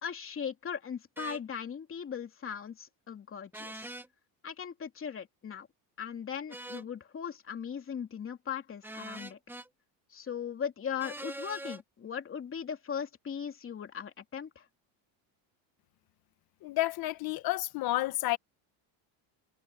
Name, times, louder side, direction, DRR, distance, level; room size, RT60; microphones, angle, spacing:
voice 1, 0.0-3.9 4.4-5.7 6.0-9.4 10.1-14.6, left 7 dB, 25° left, 2.9 m, -38 dB
sound 1, 1.2-1.4 3.5-4.1 6.5-6.9 8.8-9.7 11.0-11.8, right 1 dB, 5° right, 1.4 m, -43 dB
voice 2, 16.6-18.4, left 17 dB, 50° left, 1.2 m, -30 dB
cardioid pair, 150°, 46 cm